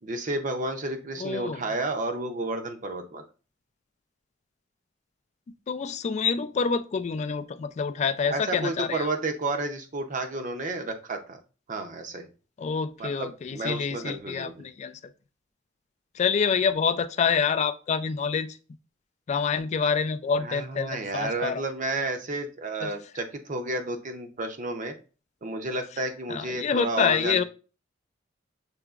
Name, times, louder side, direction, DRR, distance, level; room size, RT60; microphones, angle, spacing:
voice 1, 0.0-3.2 8.3-11.4 11.7-12.3 13.0-14.6 20.3-25.0 25.4-27.4, right 2 dB, 40° right, 5 dB, 0.6 m, -31 dB
voice 2, 1.2-1.6 5.7-9.1 12.6-15.0 16.1-18.6 19.3-21.6 22.8-22.9 26.3-27.4, left 6 dB, 35° left, 11 dB, 0.3 m, -27 dB
6.8 x 2.9 x 2.4 m, 0.35 s
head